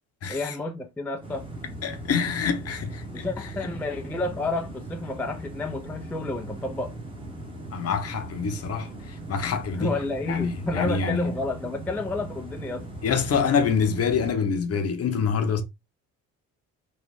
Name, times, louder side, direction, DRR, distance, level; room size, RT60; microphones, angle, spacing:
voice 1, 0.3-1.5 3.1-6.9 9.7-12.9, left 2 dB, 5° left, 0.3 m, -30 dB
sound 1, 1.2-14.3, right 1 dB, 15° right, 1.1 m, -39 dB
voice 2, 1.8-3.0 7.7-8.9 9.3-9.9 10.3-11.4 13.0-15.6, left 6 dB, 35° left, 0.7 m, -25 dB
3.2 x 2.2 x 3.3 m
hypercardioid pair, 55°, 41 cm